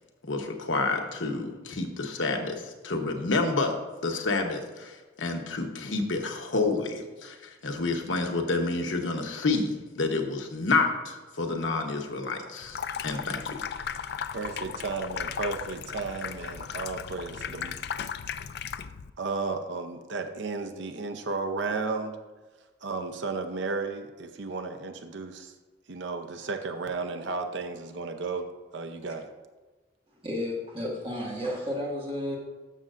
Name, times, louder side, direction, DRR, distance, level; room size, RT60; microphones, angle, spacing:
voice 1, 0.2-3.8 4.0-13.6, left 3 dB, 80° left, 3 dB, 1.1 m, -29 dB
Water tap faucet / Sink (filling or washing), 12.6-19.1, left 7 dB, 55° left, 0.3 m, -36 dB
voice 2, 14.3-17.8 19.2-22.2 22.8-25.5 25.9-28.5 28.7-29.3, right 4 dB, 70° right, 6 dB, 0.7 m, -33 dB
voice 3, 30.1-32.4, left 1 dB, 30° right, -3 dB, 1.9 m, -32 dB
13.0 x 6.4 x 2.5 m, 1.3 s
head